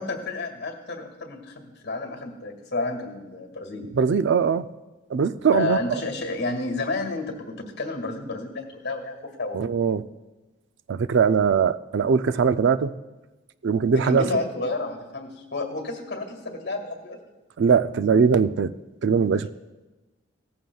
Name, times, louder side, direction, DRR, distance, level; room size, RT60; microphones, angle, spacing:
voice 1, 0.0-3.8 5.5-9.6 13.9-17.2 19.3-19.5, left 2 dB, 60° left, 3 dB, 2.0 m, -31 dB
voice 2, 3.9-4.7 5.1-5.8 9.5-10.0 10.9-12.9 13.6-14.2 17.6-18.7 19.0-19.5, right 6 dB, 60° right, 13 dB, 0.4 m, -21 dB
17.5 x 14.5 x 2.3 m, 1.1 s
head